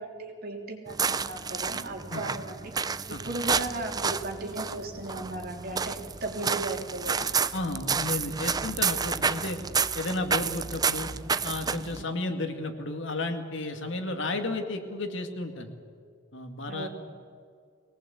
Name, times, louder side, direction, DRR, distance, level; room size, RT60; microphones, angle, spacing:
voice 1, 0.0-2.6 3.1-7.3 16.7-16.9, right 2 dB, 50° right, 1 dB, 3.3 m, -36 dB
sound 1, 0.9-12.0, right 5 dB, 20° right, 0.5 m, -30 dB
voice 2, 7.5-9.6 10.0-11.1 11.4-15.7 16.3-16.9, left 2 dB, 65° left, 6 dB, 2.2 m, -33 dB
22.5 x 18.5 x 8.4 m, 2.1 s
head